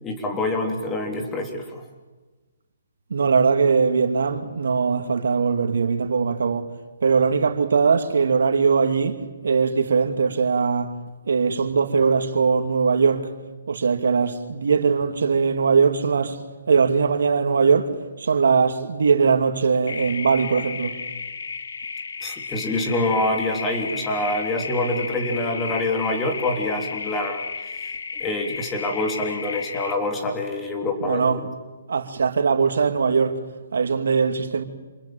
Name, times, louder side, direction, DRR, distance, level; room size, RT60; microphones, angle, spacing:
voice 1, 0.0-1.8 22.2-27.4 28.2-31.3, left 2 dB, 15° left, 3.4 m, -26 dB
voice 2, 3.1-6.7 7.0-10.9 11.3-13.3 13.7-16.4 16.7-17.9 18.2-20.9 31.0-31.5 31.9-33.4 33.7-34.6, right 5 dB, 75° right, 2.5 m, -20 dB
sound 1, 19.9-29.9, left 5 dB, 75° left, 2.5 m, -33 dB
27.5 x 21.0 x 9.1 m
hypercardioid pair, 155°, 0 cm